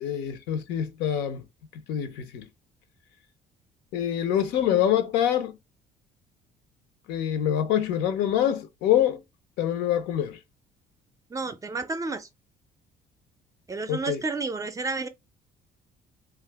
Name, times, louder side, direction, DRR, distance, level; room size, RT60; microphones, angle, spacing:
voice 1, 0.0-1.4 1.9-2.5 3.9-5.6 7.1-9.2 9.6-10.4 13.9-14.2, left 10 dB, 85° left, 0.6 m, -25 dB
voice 2, 11.3-12.3 13.7-15.1, right 3 dB, 20° right, 0.4 m, -31 dB
2.7 x 2.4 x 3.3 m
cardioid pair, 110°, 17 cm